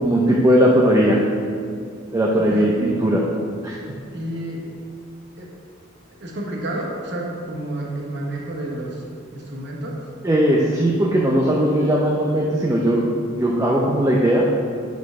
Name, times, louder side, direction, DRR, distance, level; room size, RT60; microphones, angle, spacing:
voice 1, 0.0-1.2 2.1-3.2 3.6-3.8 10.2-13.0 13.4-14.5, right 1 dB, 15° right, -2 dB, 0.5 m, -18 dB
voice 2, 2.4-2.8 4.1-4.6 5.4-5.5 6.2-9.0 9.3-10.0, right 1 dB, 60° right, -2 dB, 1.1 m, -30 dB
4.7 x 4.6 x 5.8 m, 2.3 s
head